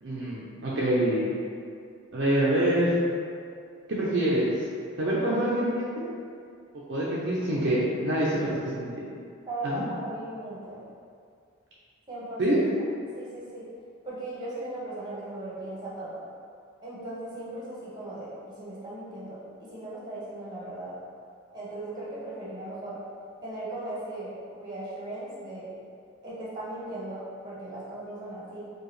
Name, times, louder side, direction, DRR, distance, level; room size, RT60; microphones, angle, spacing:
voice 1, 0.0-1.2 2.1-3.0 3.9-4.5 5.0-6.1 6.9-9.1 9.6-9.8 12.4-12.6, right 1 dB, 55° right, -7 dB, 0.5 m, -26 dB
voice 2, 9.5-10.9 12.1-12.4 13.1-13.7 14.0-16.2 16.8-20.9 21.5-23.0 23.4-25.7 26.2-28.6, right 1 dB, 20° right, -9 dB, 1.1 m, -37 dB
4.6 x 2.3 x 3.1 m, 2.3 s
head